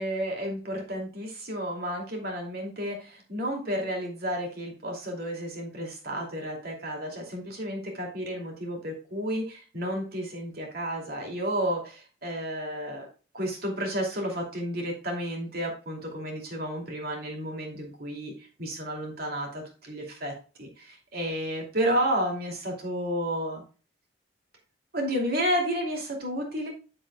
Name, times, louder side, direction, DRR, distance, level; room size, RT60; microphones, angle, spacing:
voice 1, 0.0-13.1 13.3-23.6 24.9-26.7, equal, 55° right, 1 dB, 2.7 m, -31 dB
8.0 x 7.5 x 2.3 m, 0.36 s
head